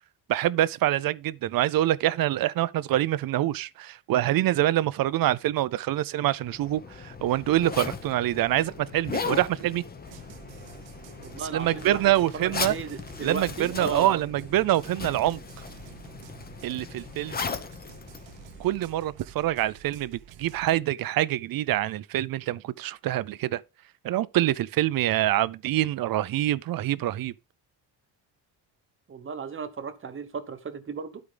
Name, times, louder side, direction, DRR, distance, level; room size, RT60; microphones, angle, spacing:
voice 1, 0.3-9.8 11.5-12.7 13.2-15.4 16.6-17.4 18.6-23.6 24.0-27.3, right 14 dB, 55° right, 0.6 m, -25 dB
Zipper (clothing), 6.4-19.1, left 5 dB, 20° left, 0.9 m, -38 dB
sound 1, 10.0-20.8, right 9 dB, 90° right, 1.0 m, -49 dB
voice 2, 11.2-14.2 29.1-31.2, right 5 dB, 30° right, 1.1 m, -35 dB
12.0 x 4.8 x 3.9 m
cardioid pair, 170°, 43 cm